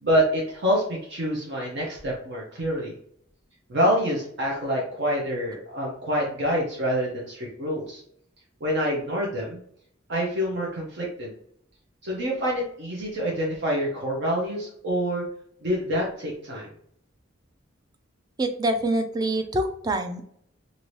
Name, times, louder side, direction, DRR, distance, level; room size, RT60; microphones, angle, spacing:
voice 1, 0.0-2.9 3.7-8.0 8.6-9.6 10.1-11.3 12.0-15.2 15.6-16.7, equal, 60° right, -3 dB, 0.7 m, -26 dB
voice 2, 18.4-20.2, right 1 dB, 20° right, 7 dB, 0.3 m, -25 dB
2.7 x 2.6 x 3.1 m, 0.68 s
head